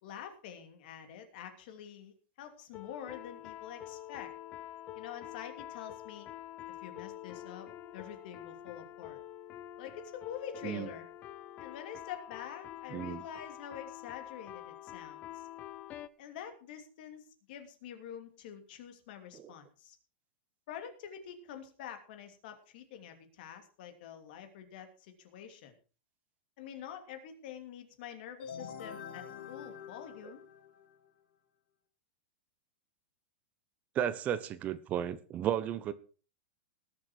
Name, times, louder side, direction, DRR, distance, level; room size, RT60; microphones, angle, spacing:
voice 1, 0.0-4.3 4.9-6.3 6.8-7.7 7.9-9.2 9.8-11.0 11.6-15.4 16.2-20.0 20.7-25.7 26.6-30.4, left 9 dB, 55° left, 2.9 m, -46 dB
sound 1, 2.7-16.1, left 13 dB, 25° left, 0.6 m, -47 dB
voice 2, 12.9-13.2 19.3-19.5 33.9-35.9, right 10 dB, 25° right, 0.9 m, -34 dB
sound 2, 28.4-31.1, left 7 dB, 75° left, 3.3 m, -46 dB
19.5 x 7.3 x 4.7 m
supercardioid pair, 160°, 6 cm